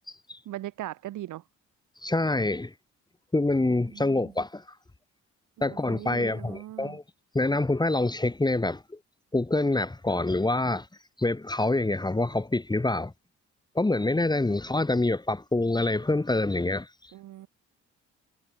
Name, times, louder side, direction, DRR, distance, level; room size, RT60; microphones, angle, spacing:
voice 1, 0.5-1.4 3.9-4.3 5.6-7.0 17.1-17.5, right 14 dB, 85° right, 4.5 m, -39 dB
voice 2, 2.0-2.7 3.3-4.6 5.6-7.0 7.3-9.0 9.3-10.9 11.2-13.1 13.8-16.9, left 2 dB, 15° left, 2.0 m, -26 dB
cardioid pair, 90°, 30 cm